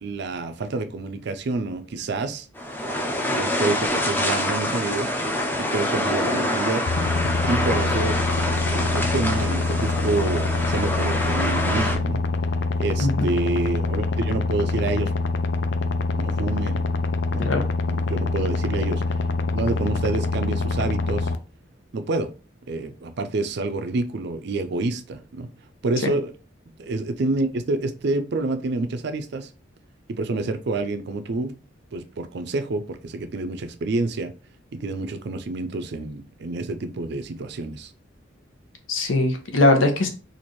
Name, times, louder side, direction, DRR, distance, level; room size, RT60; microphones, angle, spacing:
voice 1, 0.0-2.5 3.3-5.1 5.6-6.9 7.5-8.2 8.5-12.2 12.8-15.1 16.2-16.8 17.3-17.5 17.9-19.0 19.5-21.3 21.9-22.3 22.7-25.5 25.8-26.3 26.8-29.5 30.1-31.5 31.9-34.3 34.7-37.9, right 3 dB, 60° right, 0.4 m, -28 dB
sound 1, 2.6-12.0, left 1 dB, 10° left, 0.5 m, -26 dB
sound 2, 6.9-21.4, left 3 dB, 60° left, 0.4 m, -25 dB
voice 2, 38.9-40.1, left 2 dB, 80° left, 0.8 m, -20 dB
4.3 x 2.5 x 3.0 m
head